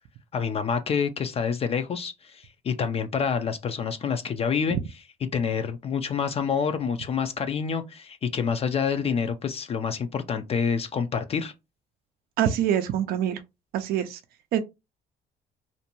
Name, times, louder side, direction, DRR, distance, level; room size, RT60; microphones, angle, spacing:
voice 1, 0.3-4.8 5.3-11.5, left 6 dB, 35° left, 0.4 m, -27 dB
voice 2, 12.4-13.4 13.7-14.2 14.5-14.6, right 10 dB, 65° right, 0.4 m, -25 dB
2.6 x 2.2 x 2.8 m
cardioid pair, 110°, 17 cm